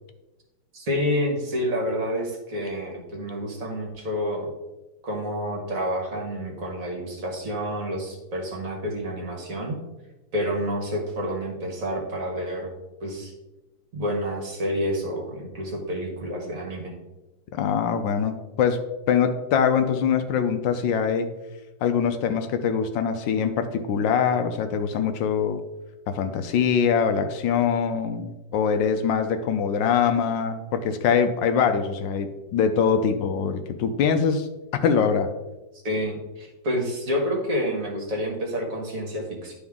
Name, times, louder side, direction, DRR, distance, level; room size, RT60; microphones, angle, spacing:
voice 1, 0.7-4.5 5.0-9.8 10.3-12.7 13.0-13.3 13.9-16.9 35.8-39.5, equal, 45° right, 0 dB, 1.8 m, -29 dB
voice 2, 17.5-18.8 19.1-21.3 21.8-25.6 26.1-34.5 34.8-35.3, left 7 dB, 75° left, 8 dB, 1.3 m, -23 dB
11.0 x 3.9 x 3.6 m, 1.1 s
omnidirectional pair, 2.2 m